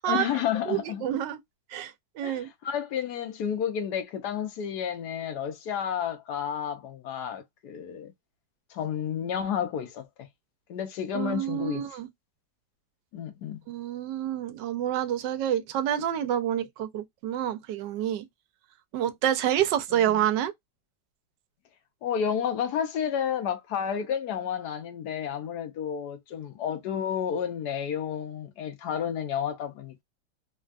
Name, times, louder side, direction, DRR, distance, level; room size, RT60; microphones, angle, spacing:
voice 1, 0.1-1.0 2.2-8.1 8.7-10.1 10.7-11.8 13.1-13.6 19.9-20.1 22.0-30.0, left 8 dB, 70° left, 1.3 m, -31 dB
voice 2, 0.6-1.4 1.7-1.9 2.2-2.5 11.1-12.1 13.7-18.3 18.9-20.5, right 11 dB, 85° right, 1.3 m, -28 dB
3.5 x 2.2 x 2.4 m
omnidirectional pair, 1.9 m